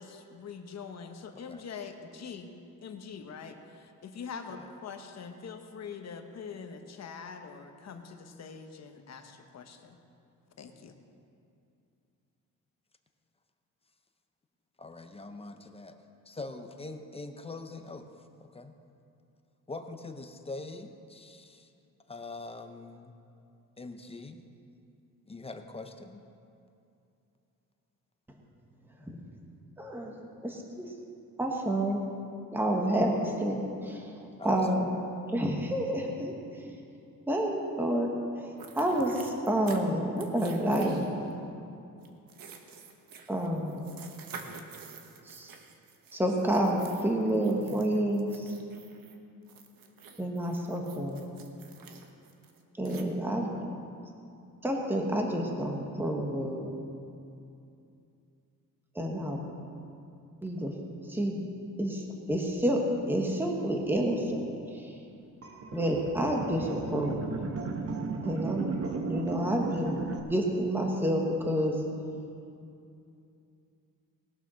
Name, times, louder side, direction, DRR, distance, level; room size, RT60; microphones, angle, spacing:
voice 1, 0.0-2.5 2.8-10.0 10.6-11.0, left 6 dB, 50° left, 5 dB, 1.0 m, -44 dB
voice 2, 1.3-1.6 4.5-4.7 14.8-16.0 16.3-18.1 18.4-18.7 19.7-21.7 22.1-23.1 23.8-24.5 25.3-26.2 34.4-34.7, left 3 dB, 15° left, 6 dB, 0.6 m, -43 dB
voice 3, 29.8-30.2 30.4-30.9 31.4-32.0 32.5-34.9 35.3-36.6 37.3-41.1 43.3-43.8 45.2-45.5 46.1-48.5 50.2-51.2 52.8-53.5 54.6-56.8 58.9-59.4 60.4-60.7 61.0-61.4 61.8-65.0 65.7-67.4 68.2-68.8 69.1-71.8, right 1 dB, 5° right, 0 dB, 1.2 m, -29 dB
sound 1, 38.6-39.8 40.2-41.3 42.0-49.1 49.5-53.0, right 6 dB, 80° right, 1.2 m, -49 dB
sound 2, 65.4-70.2, right 4 dB, 45° right, 1.0 m, -35 dB
19.5 x 7.0 x 6.2 m, 2.6 s
wide cardioid pair, 165°, 34 cm